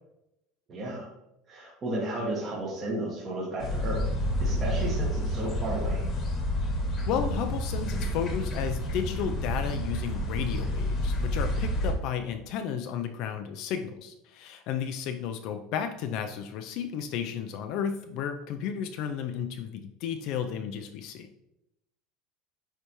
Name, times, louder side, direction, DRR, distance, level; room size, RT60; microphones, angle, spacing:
voice 1, 0.7-1.1 1.5-4.1 4.4-6.1, right 1 dB, 25° right, -5 dB, 1.3 m, -33 dB
sound 1, 3.6-11.9, left 1 dB, 30° left, 1.2 m, -29 dB
voice 2, 7.1-21.3, left 8 dB, 50° left, 6 dB, 0.4 m, -33 dB
9.6 x 3.3 x 3.0 m, 0.88 s
cardioid pair, 160°, 0 cm